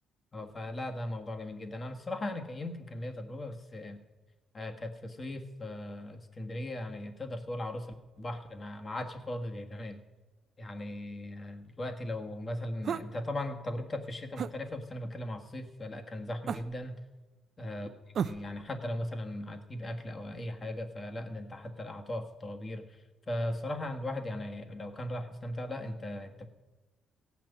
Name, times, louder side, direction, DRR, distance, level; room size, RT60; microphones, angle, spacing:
voice 1, 0.3-4.0 4.5-10.0 10.6-17.0 17.6-17.9 18.2-23.0 23.3-26.5, left 1 dB, 30° left, 5 dB, 1.5 m, -38 dB
sound 1, 12.8-13.1 14.4-14.6 16.5-16.9 18.1-18.5, right 7 dB, 60° right, 0.5 m, -34 dB
16.0 x 6.0 x 9.1 m, 1.2 s
cardioid pair, 90°, 0 cm